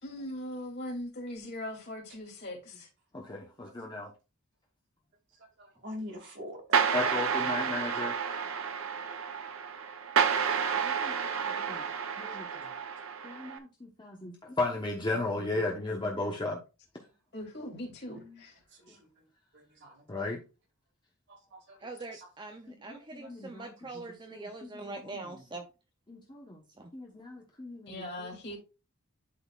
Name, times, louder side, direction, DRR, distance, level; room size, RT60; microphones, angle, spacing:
voice 1, 0.0-2.9 17.3-18.6 27.9-28.6, left 1 dB, 50° left, 3.0 m, -40 dB
voice 2, 3.1-4.1 6.9-8.2 10.8-11.9 12.2-12.5 13.2-16.6 20.1-20.4 22.7-23.7 24.3-25.2 26.1-26.6 26.9-27.9, left 2 dB, 20° left, 1.0 m, -36 dB
voice 3, 5.8-7.0 18.1-18.4 18.8-18.9 19.5-20.0 21.5-21.8, left 1 dB, 55° right, 2.2 m, -44 dB
sound 1, 6.7-13.6, right 6 dB, 70° right, 0.8 m, -30 dB
voice 4, 21.8-25.6 26.8-26.9, right 2 dB, 20° right, 0.6 m, -43 dB
11.5 x 4.0 x 2.4 m
head